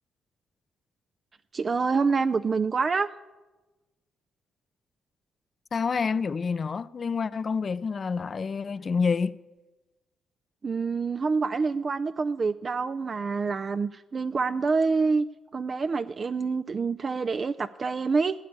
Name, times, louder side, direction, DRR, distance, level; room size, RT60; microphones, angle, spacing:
voice 1, 1.5-3.1 10.6-15.2 15.5-18.3, right 4 dB, 40° right, 0.4 m, -26 dB
voice 2, 5.7-9.4, left 5 dB, 40° left, 0.6 m, -28 dB
16.5 x 8.6 x 9.6 m
cardioid pair, 90°, 0 cm